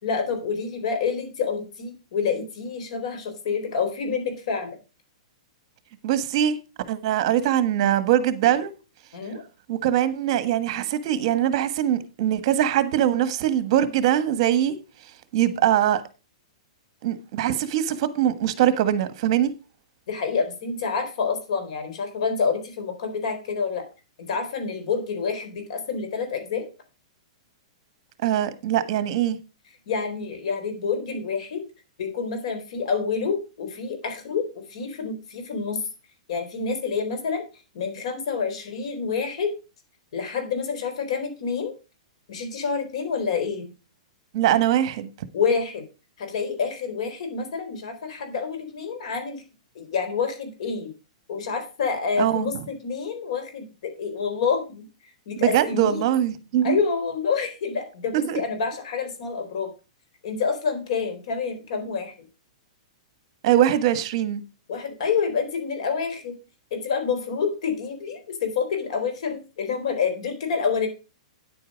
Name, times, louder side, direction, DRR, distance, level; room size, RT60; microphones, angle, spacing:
voice 1, 0.0-4.8 9.1-9.4 20.1-23.9 24.2-26.7 29.9-31.6 32.0-35.8 36.3-37.4 37.7-39.5 40.1-41.7 42.3-43.7 45.3-45.8 46.2-49.4 49.7-50.9 51.3-54.8 55.3-56.0 56.6-59.7 60.2-62.1 64.7-66.4 66.7-70.9, left 5 dB, 60° left, 4.2 m, -28 dB
voice 2, 6.0-6.6 6.9-8.7 9.7-14.7 15.3-16.0 17.0-19.5 28.2-29.4 44.3-45.1 52.2-52.6 55.4-56.8 58.1-58.4 63.4-64.4, right 11 dB, 45° right, 1.4 m, -22 dB
9.8 x 8.6 x 5.1 m
hypercardioid pair, 155°, 4 cm